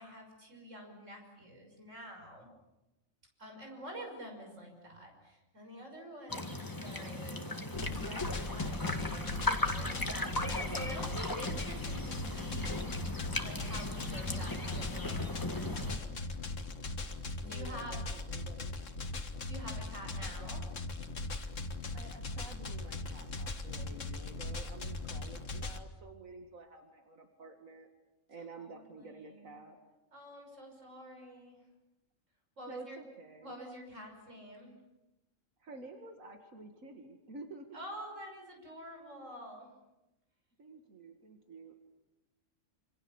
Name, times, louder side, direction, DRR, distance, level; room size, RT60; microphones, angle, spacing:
voice 1, 0.0-2.5 3.4-7.5 7.9-12.9 13.4-16.3 17.5-18.0 19.5-20.7 28.6-29.6 30.1-31.6 32.6-33.0 33.4-34.8 37.7-39.7, equal, 65° right, 2 dB, 6.3 m, -48 dB
sound 1, 6.3-16.0, left 2 dB, 15° left, 1.9 m, -37 dB
sound 2, 7.7-25.8, left 2 dB, 70° left, 2.0 m, -39 dB
voice 2, 10.6-11.2 17.4-18.9 20.2-20.5 21.9-27.9 28.3-29.8 32.7-33.5 35.6-37.8 40.6-41.8, right 3 dB, 85° right, 4 dB, 2.5 m, -50 dB
27.5 x 27.5 x 7.2 m, 0.99 s
omnidirectional pair, 1.4 m